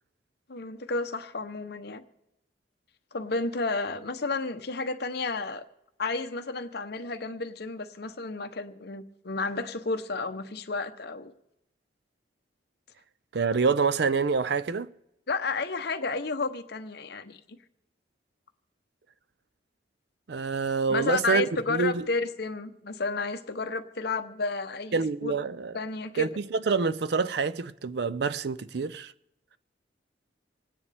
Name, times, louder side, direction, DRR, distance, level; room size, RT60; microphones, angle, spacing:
voice 1, 0.5-2.0 3.1-5.6 6.0-11.3 15.3-17.4 20.9-25.4 25.7-26.3, left 3 dB, 60° left, 0.9 m, -32 dB
voice 2, 13.3-14.9 20.3-22.1 24.9-25.7 26.2-29.1, right 4 dB, 60° right, 0.5 m, -27 dB
27.0 x 9.7 x 3.4 m
head